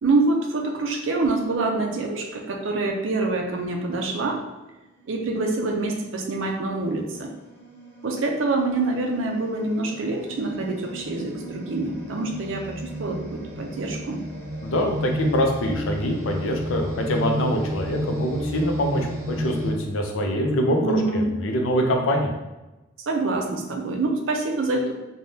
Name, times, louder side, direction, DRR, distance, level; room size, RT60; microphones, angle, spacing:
voice 1, 0.0-4.4 5.1-7.3 8.0-14.2 20.8-21.3 23.0-24.9, right 3 dB, 80° right, 2 dB, 0.5 m, -26 dB
sound 1, 5.1-5.3 6.0-19.7, equal, 50° right, 1.2 m, -33 dB
voice 2, 14.6-22.3, equal, 85° left, 2 dB, 0.5 m, -24 dB
3.3 x 2.2 x 2.7 m, 1.0 s
head